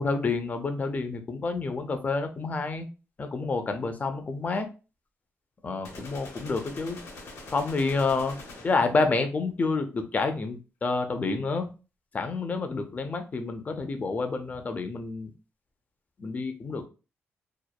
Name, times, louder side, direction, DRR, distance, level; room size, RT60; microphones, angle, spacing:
voice 1, 0.0-2.9 3.2-4.7 5.6-7.0 7.5-8.4 8.6-11.7 12.1-15.3 16.2-16.9, left 3 dB, 35° left, 6 dB, 0.4 m, -29 dB
sound 1, 5.8-9.0, left 2 dB, 80° left, 0.9 m, -44 dB
2.8 x 2.0 x 2.2 m, 0.33 s
cardioid pair, 110°, 5 cm